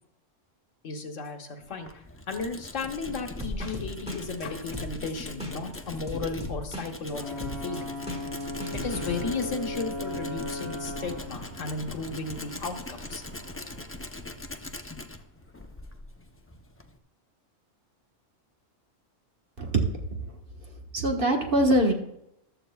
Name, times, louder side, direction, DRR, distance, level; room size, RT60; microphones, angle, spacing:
voice 1, 0.8-7.9 8.8-13.2, left 4 dB, 75° left, 4 dB, 1.5 m, -35 dB
Tools, 1.6-17.0, left 2 dB, 15° left, 0.4 m, -41 dB
sound 1, 3.4-9.2, equal, 5° right, 1.8 m, -37 dB
Ocean / Boat Water vehicle / Alarm, 7.1-14.6, left 1 dB, 20° right, 4.7 m, -38 dB
voice 2, 20.9-21.9, right 1 dB, 45° right, 2 dB, 1.5 m, -23 dB
14.5 x 12.5 x 2.3 m, 0.82 s
omnidirectional pair, 1.3 m